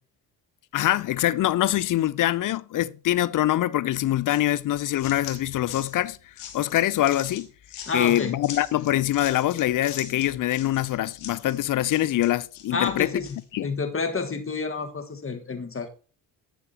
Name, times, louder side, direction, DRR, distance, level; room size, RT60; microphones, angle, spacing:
voice 1, 0.7-6.2 6.5-7.5 7.9-13.1 13.5-13.7, left 13 dB, 40° left, 0.4 m, -24 dB
sound 1, 4.3-13.4, left 9 dB, 70° left, 1.6 m, -42 dB
voice 2, 7.9-8.3 12.7-13.3 13.6-15.9, left 4 dB, 25° left, 1.5 m, -29 dB
10.0 x 6.8 x 2.8 m
hypercardioid pair, 55°, 50 cm